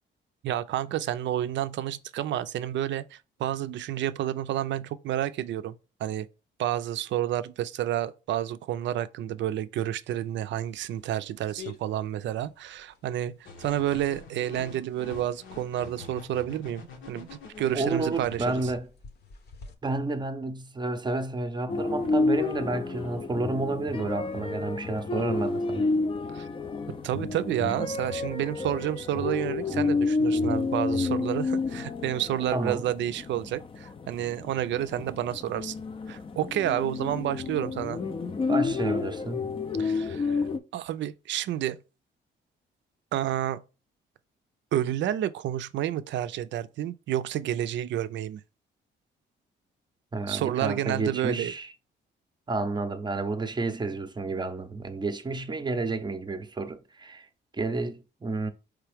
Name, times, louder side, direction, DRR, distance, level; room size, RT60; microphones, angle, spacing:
voice 1, 0.4-6.3 6.6-18.7 26.3-26.5 26.9-35.8 36.1-38.0 39.8-40.4 40.7-41.8 43.1-43.6 44.7-48.4 50.3-51.5, right 12 dB, 65° right, 0.4 m, -30 dB
sound 1, 10.1-19.7, left 6 dB, 55° left, 0.9 m, -52 dB
sound 2, 13.4-18.8, left 4 dB, 80° left, 1.1 m, -45 dB
voice 2, 17.7-18.9 19.8-25.9 32.5-32.8 38.5-39.5 50.1-51.7 52.5-57.3 57.5-58.5, right 3 dB, 20° right, 0.6 m, -30 dB
sound 3, 21.7-40.6, left 3 dB, 25° left, 0.4 m, -30 dB
4.6 x 3.3 x 3.5 m
cardioid pair, 90°, 20 cm